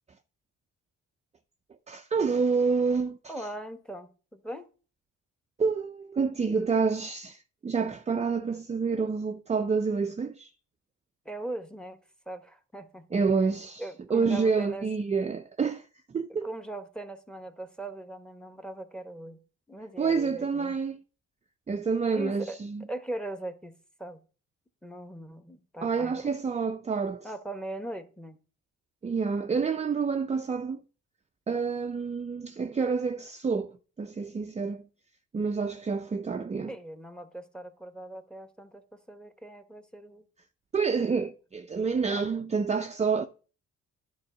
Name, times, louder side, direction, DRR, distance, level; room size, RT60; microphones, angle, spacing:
voice 1, 1.9-3.2 5.6-10.5 13.1-13.8 14.1-15.8 16.1-16.5 20.0-21.0 21.7-22.8 25.8-27.3 29.0-30.8 31.5-34.8 35.3-36.7 40.7-43.2, right 5 dB, 20° right, 0.5 m, -28 dB
voice 2, 3.3-4.7 11.2-12.0 12.3-13.0 13.8-14.9 16.4-19.4 19.7-20.8 22.1-22.6 22.9-24.2 24.8-26.2 27.2-28.4 36.7-40.3 42.1-42.2, right 1 dB, 5° left, 1.1 m, -40 dB
10.5 x 3.9 x 6.5 m
cardioid pair, 90°, 30 cm